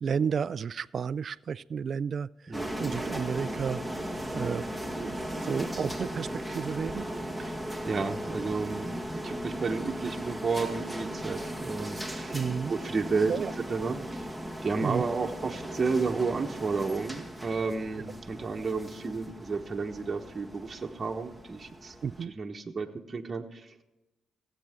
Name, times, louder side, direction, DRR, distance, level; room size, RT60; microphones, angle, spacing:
voice 1, 0.0-2.3 2.8-3.8 4.3-4.7 4.9-5.1 5.4-7.1 12.3-12.7 13.3-13.5 14.8-15.0 22.0-22.3, right 6 dB, 55° right, 20 dB, 0.3 m, -31 dB
sound 1, 2.5-22.2, equal, 10° left, 1.8 m, -37 dB
voice 2, 7.9-12.4 12.7-13.4 13.7-14.3 14.6-21.9 22.3-23.7, right 4 dB, 40° right, 3 dB, 1.2 m, -32 dB
16.5 x 8.6 x 3.7 m, 1.0 s
supercardioid pair, 65°, 0 cm